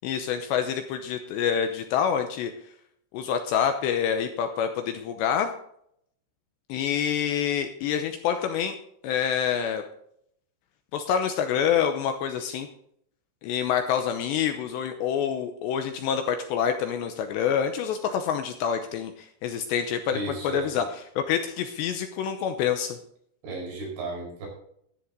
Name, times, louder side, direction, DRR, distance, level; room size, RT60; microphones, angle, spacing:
voice 1, 0.0-2.5 3.1-5.5 6.7-8.7 9.0-9.8 10.9-12.7 13.4-20.2 20.4-20.8 21.2-23.0, left 8 dB, 80° left, 7 dB, 2.7 m, -27 dB
voice 2, 20.1-20.8 23.4-24.5, right 2 dB, 70° right, -1 dB, 7.1 m, -34 dB
13.0 x 11.0 x 3.8 m, 0.70 s
omnidirectional pair, 5.8 m